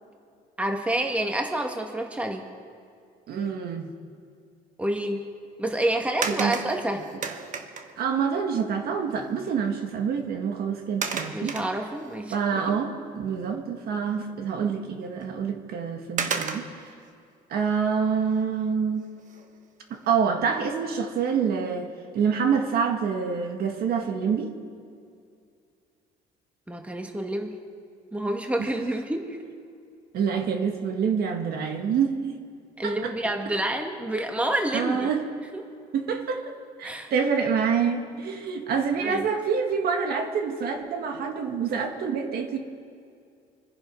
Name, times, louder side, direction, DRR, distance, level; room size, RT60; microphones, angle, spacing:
voice 1, 0.6-2.4 4.8-5.3 5.6-7.1 11.2-12.8 26.7-27.5 28.1-29.4 32.8-35.1 35.5-35.6 36.8-37.1 39.0-39.3, right 1 dB, 5° right, 4 dB, 1.5 m, -28 dB
voice 2, 3.3-3.9 6.3-6.6 8.0-11.6 12.3-16.7 17.5-19.0 19.9-24.5 28.6-28.7 30.1-32.4 32.8-33.1 34.7-35.2 35.9-42.6, right 6 dB, 65° right, 4 dB, 1.8 m, -27 dB
sound 1, 6.2-8.0 9.2-9.3 9.7-10.0 11.0-12.2 12.7-12.8 15.2-15.3 16.2-16.9 19.2-19.6 20.0-20.1, right 5 dB, 50° right, 1.2 m, -32 dB
25.5 x 10.5 x 5.3 m, 2.3 s
cardioid pair, 110°, 17 cm